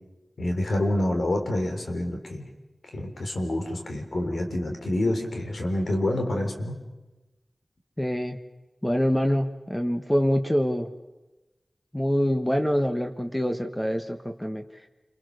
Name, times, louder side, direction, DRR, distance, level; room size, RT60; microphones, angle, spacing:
voice 1, 0.4-2.5 2.9-6.8, left 1 dB, 85° left, 3 dB, 3.8 m, -27 dB
voice 2, 8.0-8.4 8.8-10.9 11.9-14.6, equal, 10° left, 5 dB, 1.6 m, -25 dB
28.5 x 22.5 x 6.8 m, 1.1 s
wide cardioid pair, 45°, 0 cm